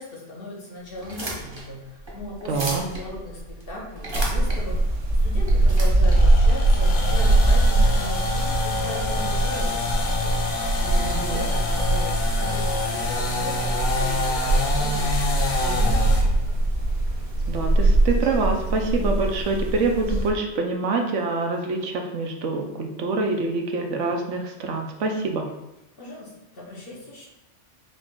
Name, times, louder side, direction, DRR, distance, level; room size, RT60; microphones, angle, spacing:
voice 1, 0.0-9.8 10.2-16.6 26.0-27.3, left 2 dB, 55° left, -4 dB, 1.2 m, -38 dB
sound 1, 0.9-7.4, right 1 dB, 25° right, 0.7 m, -36 dB
voice 2, 2.5-2.8 10.9-11.4 17.5-25.5, right 3 dB, 80° right, 3 dB, 1.0 m, -26 dB
sound 2, 4.1-20.3, right 2 dB, 55° right, 1.0 m, -22 dB
sound 3, 6.0-16.3, left 3 dB, 80° left, 1.1 m, -28 dB
5.1 x 2.5 x 3.6 m, 0.94 s
omnidirectional pair, 1.2 m